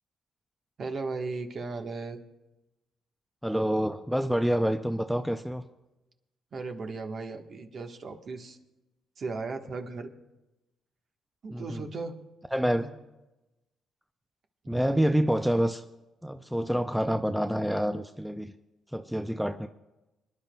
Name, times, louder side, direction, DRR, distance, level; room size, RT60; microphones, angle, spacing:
voice 1, 0.8-2.2 6.5-8.6 9.2-10.1 11.4-12.2 12.8-12.9 14.7-15.3, right 3 dB, 50° right, 4 dB, 1.3 m, -36 dB
voice 2, 3.4-5.6 11.5-11.9 12.5-12.9 14.7-15.8 16.2-18.5 18.9-19.7, equal, 5° right, 8 dB, 0.5 m, -27 dB
27.0 x 10.5 x 2.3 m, 0.99 s
cardioid pair, 90°, 0 cm